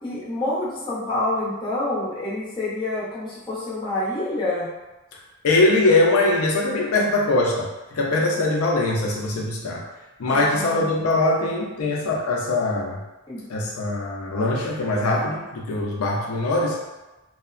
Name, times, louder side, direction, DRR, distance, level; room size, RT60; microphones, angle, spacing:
voice 1, 0.0-4.7 10.2-10.9 13.3-13.4, left 1 dB, 20° left, -9 dB, 0.6 m, -27 dB
voice 2, 5.4-9.8 10.2-13.0 13.5-16.8, left 2 dB, 80° left, -2 dB, 0.4 m, -22 dB
2.8 x 2.0 x 2.4 m, 1.1 s
head